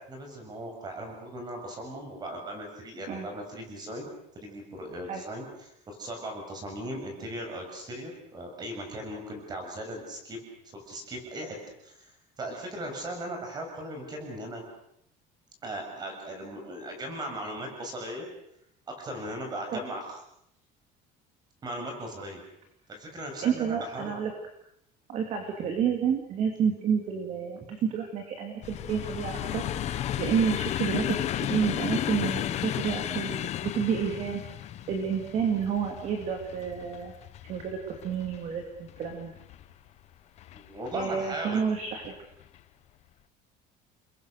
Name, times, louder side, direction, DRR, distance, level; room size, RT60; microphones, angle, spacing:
voice 1, 0.1-4.1 4.3-10.4 10.7-11.6 11.8-12.1 12.4-14.6 15.6-18.3 18.9-20.2 21.6-22.4 22.9-24.2 40.5-41.6, right 1 dB, 20° right, 3 dB, 6.8 m, -38 dB
voice 2, 23.4-24.3 25.1-33.4 33.6-34.4 34.9-37.1 37.5-39.3 40.9-42.1, right 7 dB, 40° right, 4 dB, 2.8 m, -30 dB
sound 1, 28.6-39.7 40.4-41.0 41.9-42.1 42.4-42.6, left 11 dB, 40° left, 1.2 m, -34 dB
30.0 x 21.5 x 6.7 m, 0.75 s
cardioid pair, 180°, 18 cm